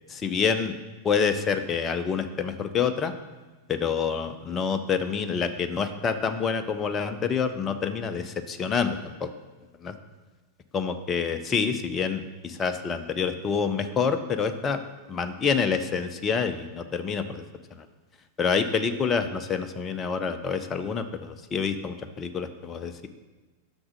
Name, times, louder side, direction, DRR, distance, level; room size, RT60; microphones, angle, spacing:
voice 1, 0.1-0.8 1.0-3.1 3.7-9.3 9.8-9.9 10.7-14.8 15.1-17.4 18.4-23.1, left 6 dB, 25° left, 9 dB, 0.5 m, -27 dB
6.0 x 6.0 x 6.4 m, 1.3 s
figure-of-eight pair, 90°, 0 cm